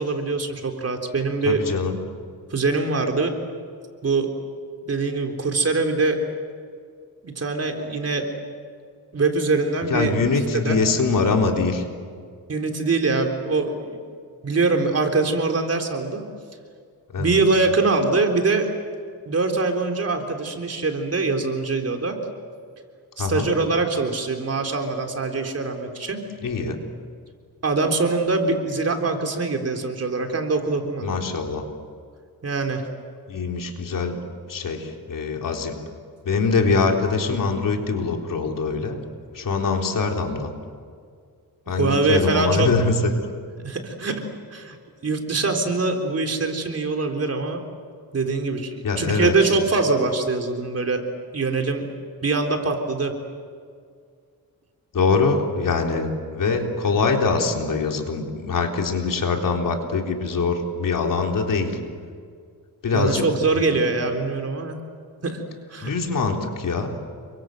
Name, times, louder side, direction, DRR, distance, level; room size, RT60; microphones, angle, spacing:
voice 1, 0.0-1.6 2.5-3.3 4.0-4.3 4.8-6.2 7.2-8.3 9.1-10.1 10.5-10.8 12.5-14.0 14.4-16.2 17.2-18.7 19.3-22.2 23.2-26.2 27.6-31.1 32.4-32.9 41.7-42.7 43.6-44.2 44.5-44.8 45.0-47.6 48.1-51.0 51.3-51.9 52.2-53.1 62.9-64.8 65.2-65.4 65.7-65.9, right 3 dB, 40° right, 3 dB, 3.8 m, -23 dB
voice 2, 1.5-2.0 9.9-11.8 17.1-17.4 23.2-23.5 26.4-26.8 31.0-31.7 33.3-34.2 34.5-35.8 36.3-39.0 39.3-40.5 41.7-43.1 48.8-49.3 54.9-61.7 62.8-63.3 63.6-63.7 65.8-67.0, left 4 dB, 60° left, 2 dB, 3.9 m, -23 dB
29.5 x 24.5 x 7.9 m, 2.1 s
wide cardioid pair, 120°, 36 cm